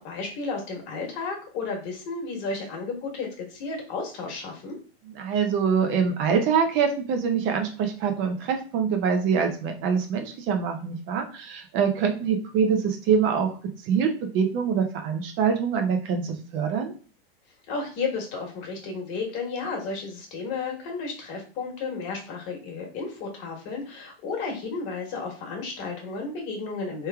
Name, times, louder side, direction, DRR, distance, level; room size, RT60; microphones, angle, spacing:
voice 1, 0.0-4.8 17.7-27.1, left 4 dB, 50° left, 0 dB, 1.4 m, -33 dB
voice 2, 5.1-13.5 13.8-16.9, right 6 dB, 40° right, 4 dB, 0.6 m, -24 dB
3.3 x 3.2 x 2.2 m, 0.39 s
hypercardioid pair, 110°, 31 cm